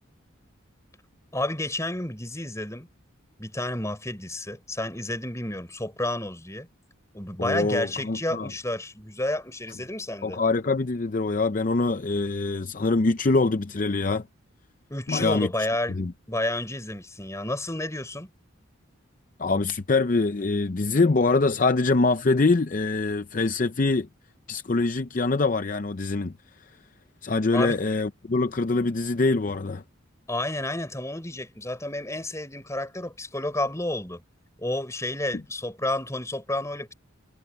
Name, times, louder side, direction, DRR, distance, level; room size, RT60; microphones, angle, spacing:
voice 1, 1.3-2.9 3.4-6.7 7.1-10.4 14.9-15.9 16.3-18.3 27.5-27.8 30.3-34.2 34.6-36.9, left 1 dB, 15° left, 5.1 m, -30 dB
voice 2, 7.4-8.5 10.2-14.2 15.1-15.5 15.9-16.1 19.4-24.1 24.5-26.3 27.2-29.8, left 3 dB, 40° left, 0.6 m, -24 dB
head